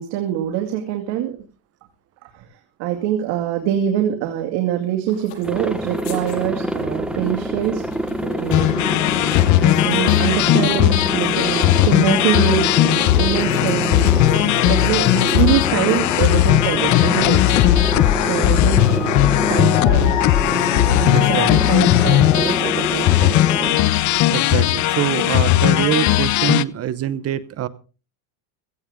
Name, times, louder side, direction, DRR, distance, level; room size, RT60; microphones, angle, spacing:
voice 1, 0.0-1.4 2.3-2.4 2.8-7.9 8.2-9.2 9.6-17.4 17.8-20.4 20.7-23.9, right 11 dB, 60° right, 3 dB, 2.4 m, -24 dB
sound 1, 5.1-23.5, left 4 dB, 70° left, 7.4 m, -45 dB
Aircraft, 5.4-23.7, equal, ahead, 1.4 m, -26 dB
sound 2, 8.5-26.6, left 15 dB, 40° left, 0.6 m, -17 dB
voice 2, 21.1-21.5 24.3-27.7, right 12 dB, 30° right, 16 dB, 0.8 m, -24 dB
16.5 x 15.0 x 3.6 m, 0.34 s
cardioid pair, 140°, 46 cm